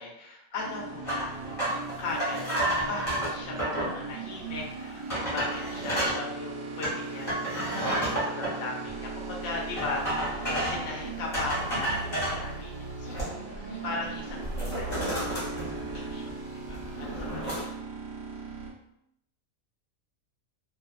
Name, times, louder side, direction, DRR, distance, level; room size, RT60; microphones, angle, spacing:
voice 1, 0.0-1.4 2.0-16.3 16.7-17.7, left 3 dB, 60° left, -2 dB, 0.8 m, -38 dB
sound 1, 0.6-18.7, right 4 dB, 75° right, 1.0 m, -38 dB
sound 2, 1.0-4.0 4.5-4.6 5.1-6.2 6.8-8.5 9.8-10.9 11.3-12.4 12.9-13.6 13.9-14.1 14.4-16.3 16.7-17.6, right 1 dB, 30° left, 0.9 m, -31 dB
voice 2, 2.3-2.8 13.0-14.0, left 4 dB, 90° left, -1 dB, 1.1 m, -49 dB
2.5 x 2.3 x 2.3 m, 0.79 s
omnidirectional pair, 1.4 m